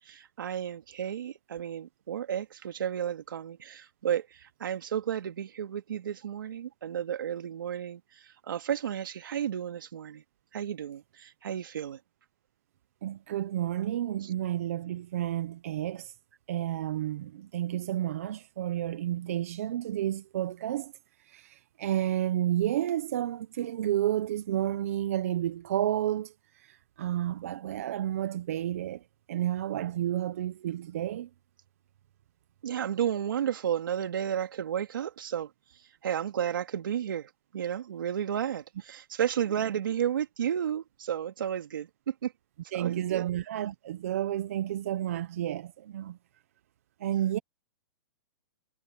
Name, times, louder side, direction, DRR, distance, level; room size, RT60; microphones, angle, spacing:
voice 1, 0.0-10.2 10.5-12.0 14.2-14.3 32.6-35.5 36.0-42.3 42.7-43.2, right 9 dB, 70° right, 3.1 m, -32 dB
voice 2, 13.0-16.1 16.5-20.9 21.2-29.0 29.3-31.3 42.7-46.2 47.0-47.4, right 12 dB, 40° right, 0.6 m, -31 dB
hypercardioid pair, 180°, 11 cm